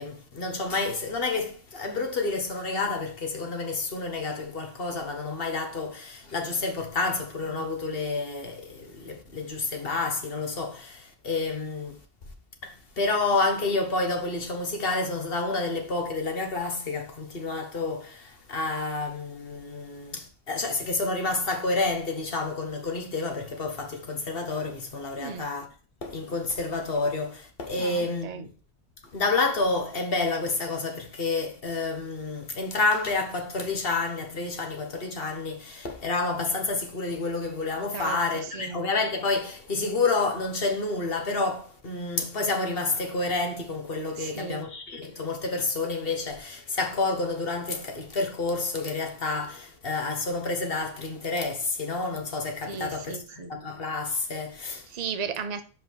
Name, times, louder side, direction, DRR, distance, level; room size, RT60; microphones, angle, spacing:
voice 1, 0.0-11.9 12.6-25.7 26.0-28.5 29.1-54.9, left 3 dB, 60° left, 1.4 m, -29 dB
voice 2, 25.1-25.4 27.8-28.5 37.9-38.8 44.2-44.7 52.7-53.5 54.9-55.6, right 6 dB, 45° right, 0.8 m, -36 dB
5.3 x 5.1 x 6.2 m
omnidirectional pair, 1.1 m